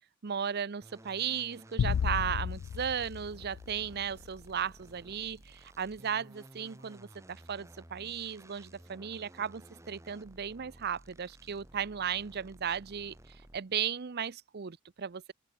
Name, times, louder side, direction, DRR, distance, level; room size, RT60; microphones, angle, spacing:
voice 1, 0.2-13.2 13.5-15.3, right 8 dB, 45° right, 0.6 m, -35 dB
sound 1, 0.8-13.8, right 1 dB, 15° right, 1.8 m, -55 dB
sound 2, 1.8-4.3, left 7 dB, 70° left, 0.3 m, -33 dB
open air
head